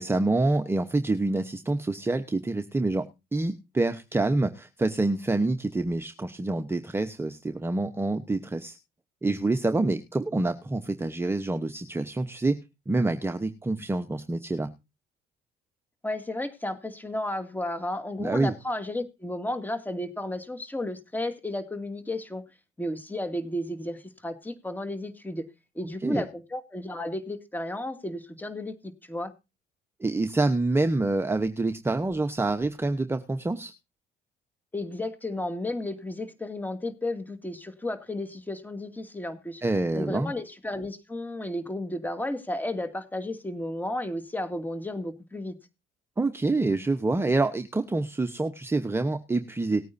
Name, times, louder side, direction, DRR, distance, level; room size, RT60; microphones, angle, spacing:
voice 1, 0.0-3.0 3.3-8.8 9.2-12.5 12.9-14.7 18.2-18.5 26.0-26.2 30.0-33.7 39.6-40.3 46.2-49.9, right 2 dB, 15° right, 1.0 m, -27 dB
voice 2, 16.0-22.4 22.8-25.5 25.7-29.3 34.7-39.6 39.9-45.5, left 1 dB, 10° left, 2.4 m, -33 dB
19.0 x 9.2 x 2.7 m
cardioid pair, 110°, 17 cm